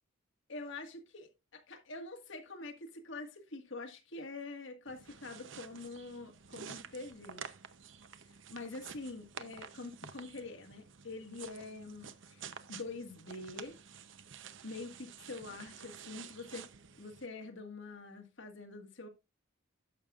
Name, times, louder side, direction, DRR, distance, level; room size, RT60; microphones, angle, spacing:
voice 1, 0.5-1.3 1.7-7.5 8.2-13.8 14.6-16.7 17.0-19.1, left 3 dB, 65° left, 1.7 m, -45 dB
sound 1, 4.9-17.3, right 7 dB, 65° right, 0.7 m, -50 dB
11.5 x 7.3 x 2.4 m
head